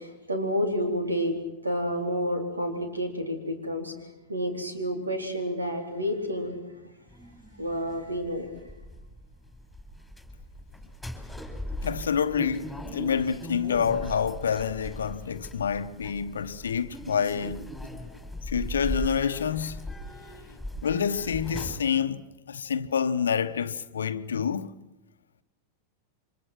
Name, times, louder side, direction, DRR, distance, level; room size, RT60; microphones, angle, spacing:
voice 1, 0.0-1.4 1.6-6.6 6.8-6.9 7.6-8.5, equal, 80° right, 4.0 m, -30 dB
sound 1, 7.1-21.8, equal, ahead, 3.9 m, -39 dB
voice 2, 11.8-17.7 18.5-19.8 20.8-24.7, left 7 dB, 70° left, 1.0 m, -28 dB
28.5 x 25.0 x 6.1 m
figure-of-eight pair, 90°, 0 cm